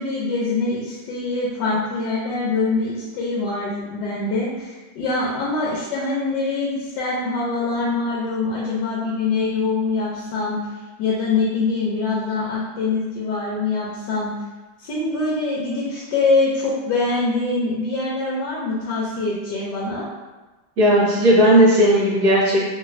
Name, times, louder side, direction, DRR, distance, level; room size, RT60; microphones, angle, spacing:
voice 1, 0.0-10.6 11.0-14.3 14.8-20.0, left 3 dB, 75° left, -6 dB, 1.2 m, -24 dB
voice 2, 20.8-22.7, equal, 60° right, -7 dB, 1.4 m, -15 dB
3.2 x 3.0 x 2.5 m, 1.2 s
omnidirectional pair, 2.1 m